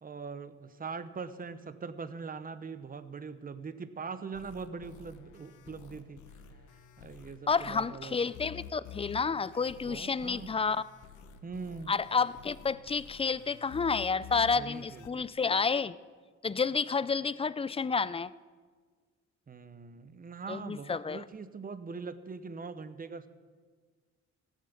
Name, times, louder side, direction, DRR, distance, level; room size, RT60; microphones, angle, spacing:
voice 1, 0.0-6.4 7.0-8.2 9.9-10.5 11.4-12.0 14.5-15.3 19.5-23.3, right 5 dB, 30° right, 12 dB, 0.9 m, -42 dB
sound 1, 4.3-15.1, left 8 dB, 80° left, 1.0 m, -50 dB
voice 2, 7.5-10.8 11.9-16.0 16.4-18.3 20.5-21.2, left 5 dB, 20° left, 18 dB, 0.4 m, -30 dB
16.0 x 7.5 x 7.1 m, 1.5 s
cardioid pair, 90°, 30 cm